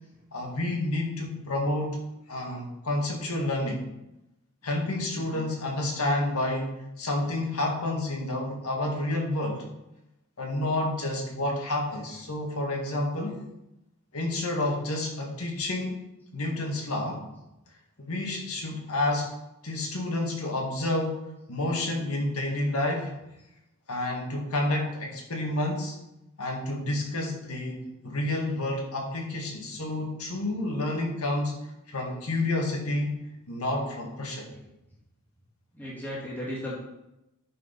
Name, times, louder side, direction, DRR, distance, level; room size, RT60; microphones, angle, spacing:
voice 1, 0.3-2.0 2.3-3.8 4.6-6.7 7.0-9.6 10.4-13.4 14.1-16.0 16.3-17.2 18.0-19.3 19.6-23.1 23.9-26.0 26.4-31.6 31.9-33.2 33.5-34.5, left 1 dB, 70° left, 0 dB, 2.1 m, -29 dB
voice 2, 5.1-5.4 32.0-32.2 34.5-34.6 35.7-36.8, left 1 dB, 10° left, -7 dB, 2.4 m, -36 dB
9.8 x 4.7 x 5.3 m, 0.90 s
head